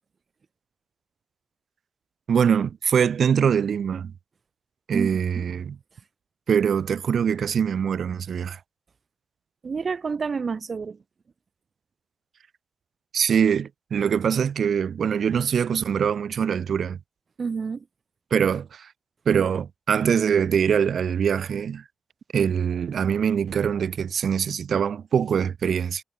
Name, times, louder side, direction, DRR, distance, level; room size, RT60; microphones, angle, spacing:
voice 1, 2.3-4.1 4.9-5.8 6.5-8.6 13.1-17.0 18.3-18.9 19.3-21.8 22.3-26.0, right 7 dB, 80° right, 7.0 m, -23 dB
voice 2, 4.9-5.5 9.6-11.0 17.4-17.9, right 5 dB, 65° right, 5.2 m, -29 dB
supercardioid pair, 40°, 0 cm